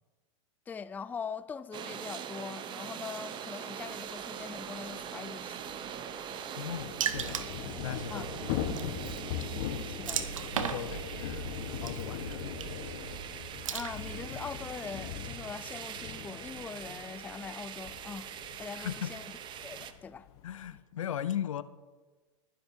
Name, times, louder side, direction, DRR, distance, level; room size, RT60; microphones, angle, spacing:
voice 1, 0.7-5.6 8.1-8.3 10.0-10.3 13.7-18.3 18.6-19.2 19.6-20.3, left 6 dB, 10° left, 0.4 m, -42 dB
sound 1, 1.7-19.9, right 9 dB, 30° right, 0.8 m, -42 dB
Thunder / Rain, 4.2-4.3 4.5-4.6 4.9-20.8, left 10 dB, 55° left, 1.2 m, -41 dB
voice 2, 6.6-8.5 10.5-11.5 11.8-12.4 18.7-19.2 20.4-21.6, left 10 dB, 75° left, 0.6 m, -38 dB
Water / Splash splatter, 7.0-14.4, right 7 dB, 75° right, 0.9 m, -38 dB
20.0 x 10.0 x 2.7 m
hypercardioid pair, 105°, 17 cm